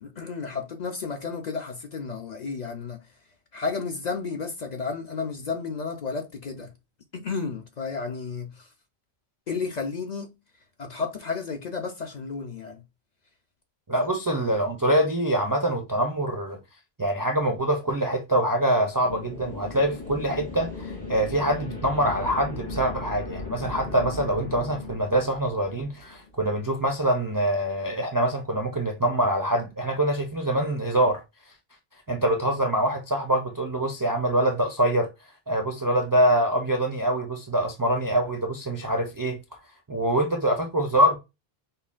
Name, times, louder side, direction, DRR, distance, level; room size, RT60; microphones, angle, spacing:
voice 1, 0.0-3.0 3.5-6.7 7.1-8.7 9.5-10.3 10.8-12.8, left 4 dB, 55° left, 0.5 m, -32 dB
voice 2, 13.9-16.6 17.0-31.2 32.1-35.1 35.5-39.4 39.9-41.2, right 1 dB, 35° right, 0.3 m, -24 dB
sound 1, 19.0-26.6, left 3 dB, 85° left, 2.9 m, -37 dB
5.4 x 2.1 x 2.4 m
omnidirectional pair, 1.1 m